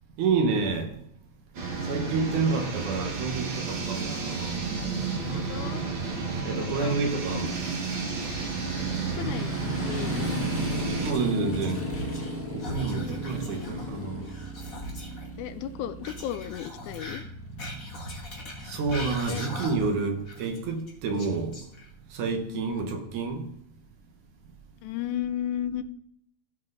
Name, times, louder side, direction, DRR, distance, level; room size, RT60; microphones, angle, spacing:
voice 1, 0.2-1.0 1.8-4.5 6.4-7.6 11.0-11.8 12.5-14.3 18.6-21.6 22.1-23.5, right 4 dB, 85° right, 2.8 m, -29 dB
sound 1, 1.5-11.1, right 4 dB, 45° right, 2.1 m, -32 dB
Motorcycle, 3.9-19.6, right 1 dB, 15° left, 0.5 m, -36 dB
voice 2, 5.3-5.9 6.5-7.0 7.3-7.4 8.9-9.6 9.8-10.4 12.9-13.2 13.7-14.1 15.4-17.2 19.3-19.4 22.5-22.8 24.8-25.8, left 11 dB, 90° left, 2.1 m, -35 dB
Whispering, 10.7-12.3 12.6-15.3 16.0-20.0 20.3-22.1, equal, 35° left, 1.7 m, -40 dB
15.0 x 5.6 x 4.0 m
omnidirectional pair, 3.3 m